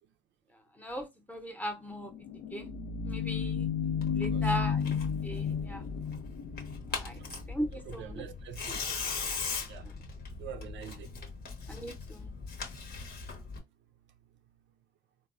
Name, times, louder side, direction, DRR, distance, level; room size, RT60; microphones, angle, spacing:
voice 1, 0.8-2.1 2.5-2.7 3.0-3.7 4.1-5.9 6.9-7.2 7.5-8.2 9.8-9.9 11.7-12.3, equal, 10° left, 0.7 m, -38 dB
sound 1, 1.9-7.5, left 7 dB, 85° left, 0.5 m, -33 dB
Tearing, 4.0-13.6, left 4 dB, 50° left, 0.8 m, -40 dB
voice 2, 7.7-8.8 9.7-9.9 10.4-11.4, right 9 dB, 70° right, 0.4 m, -45 dB
3.3 x 2.0 x 2.4 m
cardioid pair, 90°, 20 cm